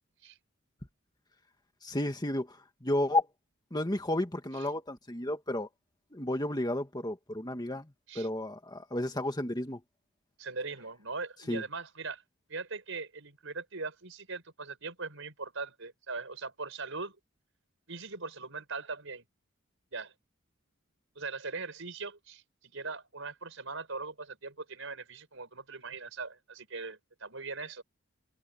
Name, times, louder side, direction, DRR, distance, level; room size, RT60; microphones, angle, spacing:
voice 1, 1.8-3.3 3.7-5.7 6.1-7.8 8.2-9.8 11.5-11.6, left 1 dB, 20° left, 2.0 m, -32 dB
voice 2, 10.4-12.2 12.5-17.2 17.9-19.2 19.9-20.1 21.2-27.8, right 4 dB, 65° right, 6.8 m, -40 dB
head